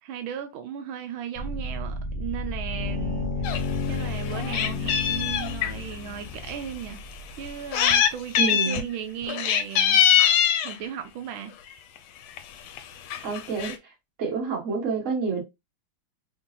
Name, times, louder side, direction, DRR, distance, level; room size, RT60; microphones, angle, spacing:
voice 1, 0.0-7.0 7.4-10.3 10.6-11.6, right 9 dB, 80° right, 1.4 m, -36 dB
sound 1, 1.3-7.9, left 3 dB, 65° left, 0.5 m, -32 dB
Meow, 3.4-3.6 4.0-5.7 6.5-6.6 7.5-8.1 8.3-8.8 9.3-10.7 11.7-12.0 12.4-12.5 12.7-12.8 13.1-13.7, left 9 dB, 80° left, 1.5 m, -22 dB
voice 2, 8.4-8.8 13.2-13.9 14.2-15.4, right 5 dB, 45° right, 1.5 m, -28 dB
3.8 x 3.7 x 2.6 m
omnidirectional pair, 2.2 m